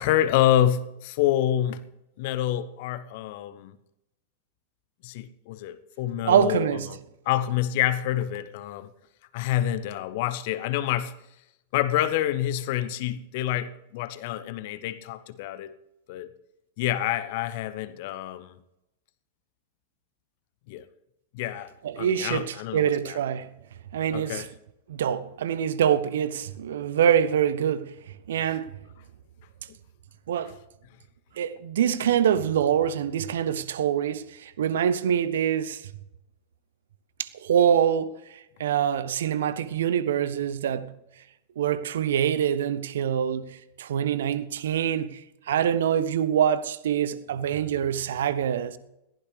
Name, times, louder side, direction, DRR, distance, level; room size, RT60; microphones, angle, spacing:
voice 1, 0.0-1.8 2.2-3.8 5.0-7.0 7.2-8.9 9.3-11.1 11.7-15.7 16.1-16.3 16.8-18.6 20.7-20.9 21.3-23.2 24.1-24.5 29.7-29.8 30.4-30.5, left 12 dB, 50° left, 0.9 m, -27 dB
voice 2, 6.2-6.9 21.8-23.5 23.9-24.4 24.9-28.0 28.3-28.7 30.3-30.5 31.4-35.9 37.2-40.9 41.6-48.8, right 9 dB, 60° right, 0.8 m, -25 dB
21.0 x 15.0 x 3.3 m
figure-of-eight pair, 90°, 0 cm